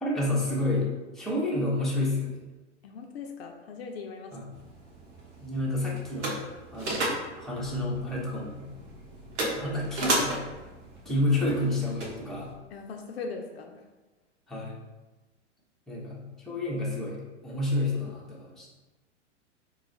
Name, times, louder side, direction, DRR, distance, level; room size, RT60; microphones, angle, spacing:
voice 1, 0.0-2.4 4.3-4.4 5.4-7.1 7.4-8.7 9.5-10.4 11.0-12.5 14.5-14.8 15.9-18.7, left 2 dB, ahead, -6 dB, 0.6 m, -30 dB
voice 2, 2.8-4.4 12.7-13.8, left 4 dB, 55° left, 3 dB, 0.5 m, -39 dB
sound 1, 4.5-12.5, right 1 dB, 70° right, 1.1 m, -35 dB
2.9 x 2.3 x 3.9 m, 1.2 s
figure-of-eight pair, 100°, 36 cm